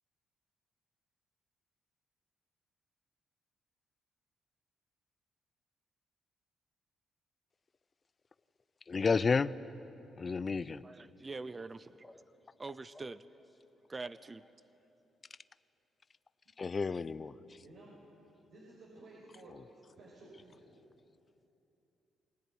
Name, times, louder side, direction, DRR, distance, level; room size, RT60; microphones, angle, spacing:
voice 1, 8.9-9.6 10.2-10.9 15.3-15.4 16.6-17.6 19.5-19.6, left 4 dB, 35° left, 0.6 m, -32 dB
voice 2, 10.8-11.9 12.6-13.2 13.9-14.4, right 3 dB, 25° right, 0.7 m, -43 dB
voice 3, 12.0-14.9, left 1 dB, 10° left, 1.9 m, -62 dB
voice 4, 17.6-17.9 18.5-19.5 20.0-20.8, right 2 dB, 70° right, 5.8 m, -54 dB
23.5 x 19.5 x 9.5 m
cardioid pair, 90°, 0 cm